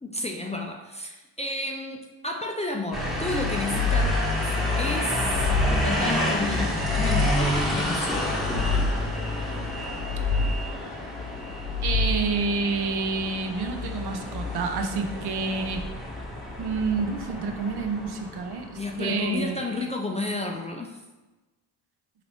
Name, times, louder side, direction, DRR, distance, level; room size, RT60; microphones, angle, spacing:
voice 1, 0.0-4.2 4.7-8.3 18.8-21.0, left 2 dB, 15° left, 1 dB, 0.4 m, -31 dB
sound 1, 2.9-19.1, left 1 dB, ahead, 0.9 m, -29 dB
sound 2, 3.4-4.5 5.0-6.1 6.6-7.7 8.2-9.3 9.8-10.9 11.4-12.5, left 3 dB, 50° left, 0.7 m, -28 dB
voice 2, 11.8-15.8 16.6-19.8, right 4 dB, 55° right, 5 dB, 0.7 m, -29 dB
3.8 x 3.0 x 3.1 m, 1.1 s
supercardioid pair, 60°, 47 cm